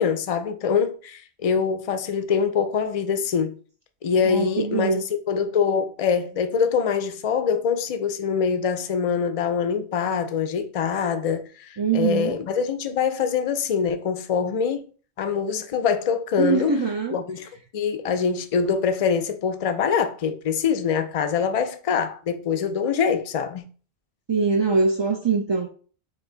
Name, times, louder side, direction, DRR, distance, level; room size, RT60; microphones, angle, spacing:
voice 1, 0.0-3.6 4.0-5.0 5.3-14.9 15.2-16.7 17.1-23.7, left 6 dB, 45° left, 0.5 m, -24 dB
voice 2, 4.2-5.0 11.8-12.4 16.4-17.2 24.3-25.7, right 4 dB, 50° right, 0.3 m, -23 dB
4.4 x 2.8 x 3.9 m
omnidirectional pair, 1.1 m